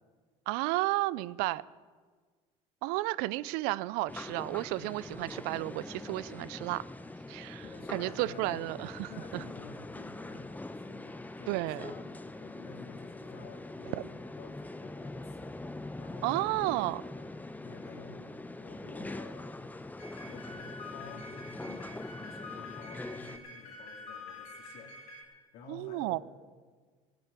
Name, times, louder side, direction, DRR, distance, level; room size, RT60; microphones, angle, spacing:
voice 1, 0.5-1.6 2.8-6.8 7.3-7.6 7.9-9.4 11.5-11.8 16.2-17.0 25.7-26.2, right 19 dB, 70° right, 19 dB, 0.5 m, -32 dB
sound 1, 4.1-23.4, left 2 dB, 10° left, 0.9 m, -43 dB
voice 2, 7.6-8.6 9.1-15.5 16.0-17.0 17.6-19.7 20.2-26.2, left 5 dB, 65° left, 3 dB, 2.7 m, -51 dB
sound 2, 20.0-25.2, left 3 dB, 85° left, 3.9 m, -47 dB
15.0 x 9.2 x 8.2 m, 1.5 s
hypercardioid pair, 80°, 16 cm